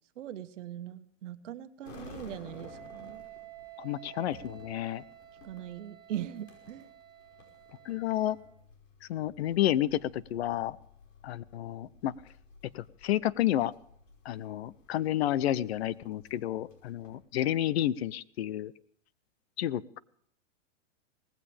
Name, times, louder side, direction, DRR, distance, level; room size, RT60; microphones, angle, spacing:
voice 1, 0.2-3.2 5.4-6.9, right 11 dB, 70° right, 10 dB, 1.3 m, -40 dB
sound 1, 1.8-17.2, left 3 dB, 75° left, 5.5 m, -55 dB
Wind instrument woodwind instrument, 2.4-8.5, right 12 dB, 15° right, 2.2 m, -51 dB
voice 2, 3.8-5.0 7.9-8.4 9.1-10.8 11.2-12.1 12.7-13.7 14.3-18.7 19.6-20.0, left 13 dB, 55° left, 19 dB, 0.7 m, -30 dB
18.5 x 16.0 x 3.4 m, 0.65 s
supercardioid pair, 160°, 38 cm